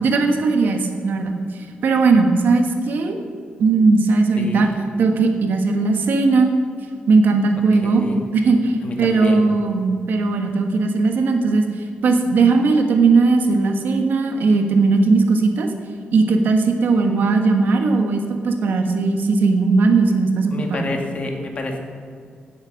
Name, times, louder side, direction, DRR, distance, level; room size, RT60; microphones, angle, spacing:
voice 1, 0.0-3.2 3.6-4.7 5.0-6.5 7.1-8.0 8.3-15.7 16.1-20.9, right 3 dB, 70° right, 4 dB, 1.5 m, -18 dB
voice 2, 4.4-4.7 7.8-8.2 8.8-9.4 20.5-21.8, left 2 dB, 40° left, 3 dB, 1.7 m, -28 dB
16.5 x 7.5 x 6.4 m, 2.3 s
wide cardioid pair, 155°, 3 cm